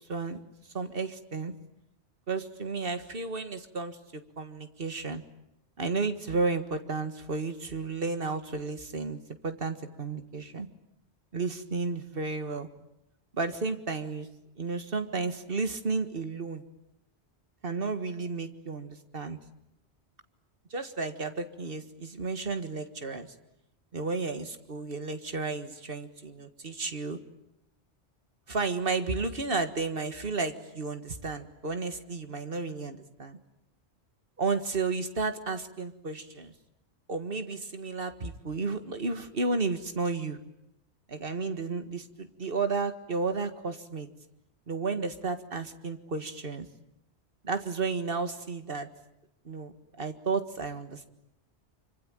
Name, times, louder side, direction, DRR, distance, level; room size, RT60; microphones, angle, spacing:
voice 1, 0.7-1.5 2.3-5.2 5.8-10.7 11.3-12.7 13.3-14.3 14.6-16.6 17.6-19.4 20.7-23.3 23.9-27.2 28.5-33.4 34.4-36.5 37.1-40.4 41.1-44.1 44.7-46.7 47.4-48.9 49.5-51.1, right 4 dB, 55° right, 8 dB, 2.0 m, -32 dB
25.5 x 25.0 x 9.0 m, 0.83 s
omnidirectional pair, 1.1 m